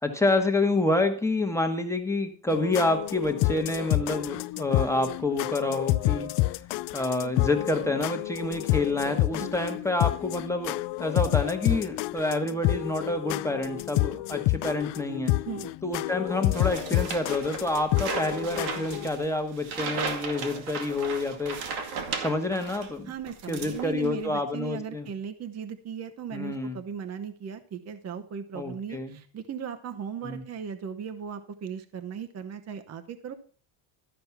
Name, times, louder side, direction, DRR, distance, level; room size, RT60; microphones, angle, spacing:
voice 1, 0.0-6.3 6.9-15.3 15.8-21.6 22.2-23.1 23.5-25.1 26.3-26.8 28.5-29.2 30.2-30.4, left 2 dB, 5° left, 4 dB, 1.2 m, -28 dB
sound 1, 2.5-19.1, left 18 dB, 65° left, 0.5 m, -29 dB
sound 2, 16.5-22.9 23.3-24.2, right 5 dB, 80° right, 2.2 m, -35 dB
voice 2, 23.1-33.3, right 7 dB, 35° right, 9 dB, 0.9 m, -37 dB
12.5 x 5.3 x 5.8 m, 0.42 s
cardioid pair, 135°, 47 cm